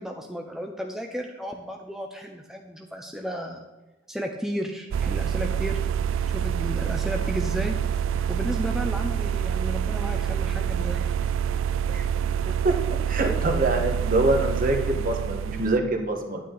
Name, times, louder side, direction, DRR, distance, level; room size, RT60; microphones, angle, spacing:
voice 1, 0.0-3.6 4.1-5.8 6.3-7.8 8.3-11.1, equal, ahead, 2 dB, 0.6 m, -33 dB
sound 1, 4.9-15.8, right 8 dB, 90° right, 0.3 m, -26 dB
voice 2, 12.4-12.8 13.1-16.4, right 2 dB, 45° right, 3 dB, 1.5 m, -25 dB
10.0 x 9.4 x 4.0 m, 1.1 s
head